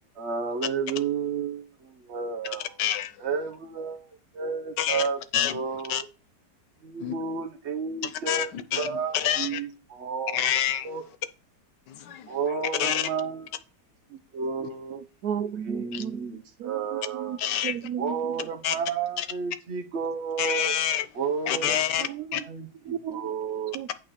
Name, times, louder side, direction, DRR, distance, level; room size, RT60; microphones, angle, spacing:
voice 1, 0.2-1.7 2.1-2.8 3.2-5.2 5.5-6.0 6.8-8.5 8.8-10.4 10.8-11.0 12.3-13.5 14.1-15.0 15.7-17.4 18.0-20.8 21.1-22.1 22.4-22.7 23.1-23.8, right 6 dB, 45° right, 1.4 m, -31 dB
voice 2, 2.8-3.1 4.8-5.0 5.3-5.6 5.9-6.0 7.0-7.1 8.3-9.6 10.3-10.9 11.9-12.4 12.8-13.1 15.9-16.0 17.4-17.7 18.6-18.8 19.2-19.3 20.4-21.1 21.5-22.4, left 10 dB, 85° left, 1.5 m, -27 dB
voice 3, 14.6-18.4 22.0-22.5 22.8-23.3 23.7-23.9, right 9 dB, 70° right, 1.0 m, -35 dB
8.8 x 4.5 x 4.9 m
omnidirectional pair, 1.8 m